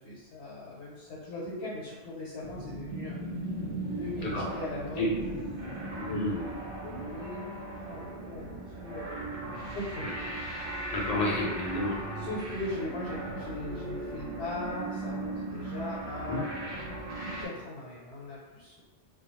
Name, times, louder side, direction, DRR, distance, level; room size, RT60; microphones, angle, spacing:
voice 1, 0.0-3.2 3.8-5.4 5.9-6.4 6.8-7.4 7.9-9.2 9.7-10.1 12.2-16.5 17.2-18.8, left 2 dB, 75° left, -5 dB, 0.9 m, -39 dB
sound 1, 2.4-17.5, right 2 dB, 60° right, 0.8 m, -38 dB
voice 2, 10.9-11.9 16.2-16.4, left 1 dB, 50° left, -3 dB, 0.5 m, -30 dB
2.3 x 2.2 x 2.9 m, 1.2 s
omnidirectional pair, 1.1 m